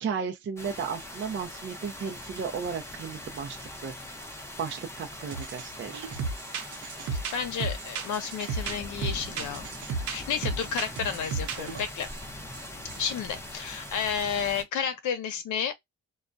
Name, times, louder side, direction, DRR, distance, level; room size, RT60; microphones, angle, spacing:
voice 1, 0.0-3.9 4.6-6.1 11.0-11.1, right 6 dB, 40° right, 0.5 m, -34 dB
sound 1, 0.6-14.6, left 1 dB, 10° left, 0.7 m, -42 dB
sound 2, 5.3-5.7 5.9-12.2 12.5-12.6 12.9-13.1, right 4 dB, 80° right, 0.8 m, -34 dB
voice 2, 7.1-9.7 10.1-12.1 12.9-15.7, left 7 dB, 75° left, 0.7 m, -31 dB
2.2 x 2.2 x 2.5 m
cardioid pair, 90°, 30 cm